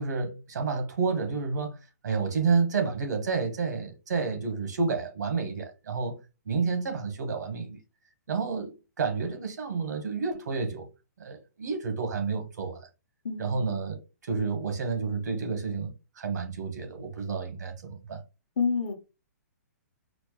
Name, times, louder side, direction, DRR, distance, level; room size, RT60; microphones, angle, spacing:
voice 1, 0.0-6.2 6.5-7.8 8.3-10.9 11.2-12.8 13.4-18.2, right 4 dB, 75° right, 1.1 m, -30 dB
voice 2, 13.2-13.8 18.6-18.9, left 5 dB, 50° left, 0.9 m, -28 dB
4.3 x 2.1 x 3.0 m
hypercardioid pair, 170°, 9 cm